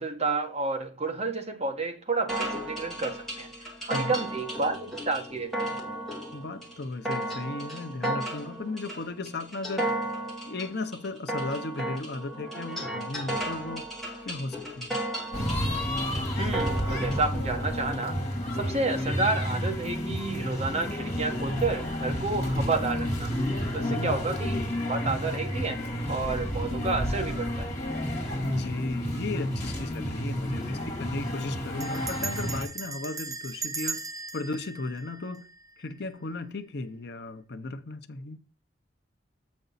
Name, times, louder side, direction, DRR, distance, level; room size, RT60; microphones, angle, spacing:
voice 1, 0.0-3.5 3.9-5.8 16.4-18.2 18.5-23.3 23.7-24.6 24.9-25.8 26.1-27.7, right 3 dB, 35° right, 1.3 m, -30 dB
sound 1, 2.3-17.3, right 1 dB, ahead, 2.0 m, -34 dB
voice 2, 3.8-4.2 6.3-9.9 10.5-13.8 14.2-15.0 23.8-24.2 28.4-34.0 34.3-35.5 35.8-38.4, left 2 dB, 60° left, 0.7 m, -35 dB
sound 2, 15.3-32.7, equal, 40° left, 2.2 m, -30 dB
Bell, 31.8-35.9, right 4 dB, 20° right, 0.8 m, -38 dB
8.0 x 5.3 x 4.0 m
head